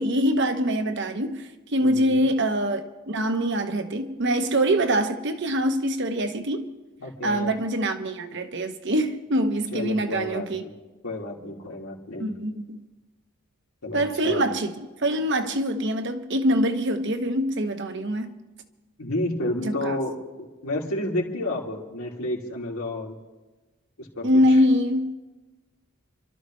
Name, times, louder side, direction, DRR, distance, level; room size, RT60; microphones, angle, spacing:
voice 1, 0.0-6.7 7.2-10.6 12.2-12.8 13.9-14.7 15.0-18.3 19.6-20.0 24.2-25.1, equal, 55° right, 1.0 m, -24 dB
voice 2, 1.8-2.2 7.0-7.5 9.7-10.7 11.0-12.3 13.8-14.5 19.0-23.1 24.0-24.6, left 1 dB, 85° left, 2.7 m, -31 dB
28.5 x 12.5 x 3.2 m
head